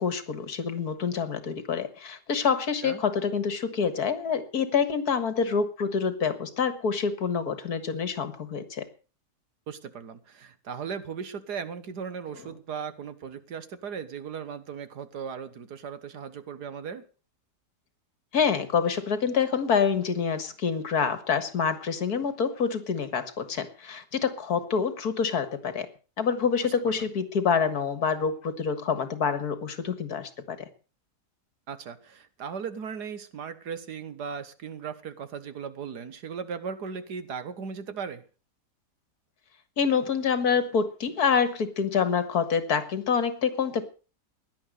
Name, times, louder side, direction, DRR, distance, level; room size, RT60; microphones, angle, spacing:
voice 1, 0.0-8.9 18.3-25.9 26.2-30.6 39.8-43.9, left 6 dB, 65° left, 12 dB, 2.0 m, -27 dB
voice 2, 9.7-17.0 26.6-27.1 31.7-38.2, right 6 dB, 75° right, 12 dB, 1.9 m, -37 dB
16.5 x 10.5 x 6.6 m, 0.37 s
omnidirectional pair, 1.8 m